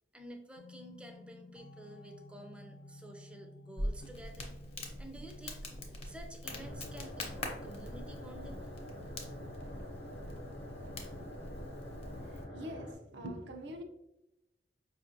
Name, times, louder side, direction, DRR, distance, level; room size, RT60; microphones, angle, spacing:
voice 1, 0.1-4.5 5.0-5.6 6.0-8.6, right 1 dB, 5° right, 0.4 m, -51 dB
sound 1, 0.6-13.2, left 1 dB, 90° left, 0.4 m, -56 dB
Crackle, 3.8-12.4, left 1 dB, 35° left, 0.6 m, -43 dB
sound 2, 6.4-12.9, left 1 dB, 70° left, 0.8 m, -46 dB
voice 2, 12.3-13.8, equal, 80° right, 0.5 m, -44 dB
4.9 x 2.5 x 2.6 m
head